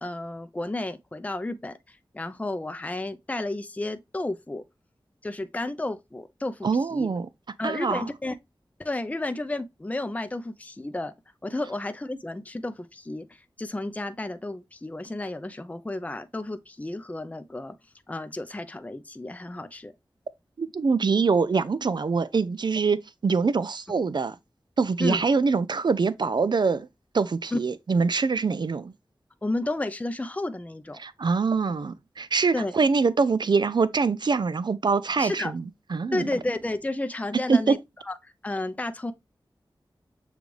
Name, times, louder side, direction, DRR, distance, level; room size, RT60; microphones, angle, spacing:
voice 1, 0.0-1.8 2.1-4.6 5.2-7.1 7.6-8.3 8.8-11.1 11.4-17.7 18.1-19.9 25.0-25.2 27.5-27.6 29.4-31.0 32.5-32.7 35.2-35.5 36.1-37.8 38.0-39.1, left 2 dB, 15° left, 0.4 m, -32 dB
voice 2, 6.6-7.3 7.6-8.1 20.6-24.4 24.8-26.9 27.1-28.9 31.0-35.6 35.9-36.3 37.5-37.8, right 4 dB, 60° right, 0.4 m, -24 dB
6.7 x 2.4 x 3.1 m
wide cardioid pair, 55°, 9 cm